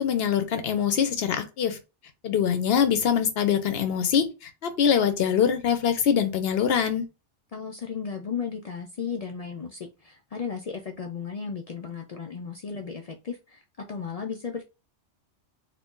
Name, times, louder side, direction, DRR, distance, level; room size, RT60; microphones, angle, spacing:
voice 1, 0.0-1.8 2.2-7.1, left 8 dB, 65° left, 0.7 m, -24 dB
voice 2, 7.5-14.6, left 6 dB, 80° left, 0.3 m, -35 dB
2.7 x 2.6 x 3.5 m
omnidirectional pair, 1.2 m